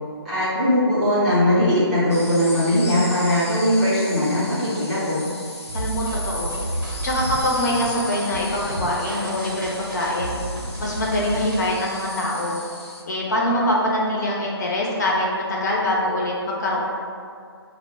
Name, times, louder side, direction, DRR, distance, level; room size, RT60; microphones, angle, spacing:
voice 1, 0.2-5.2, left 1 dB, 5° right, -14 dB, 0.5 m, -20 dB
sound 1, 2.1-13.0, left 2 dB, 80° left, 0.7 m, -36 dB
voice 2, 5.7-10.4 10.8-12.6 13.1-16.8, left 1 dB, 45° left, -4 dB, 0.6 m, -24 dB
sound 2, 5.7-11.7, right 1 dB, 50° right, 0.7 m, -31 dB
2.8 x 2.1 x 4.0 m, 2.2 s
figure-of-eight pair, 145°, 14 cm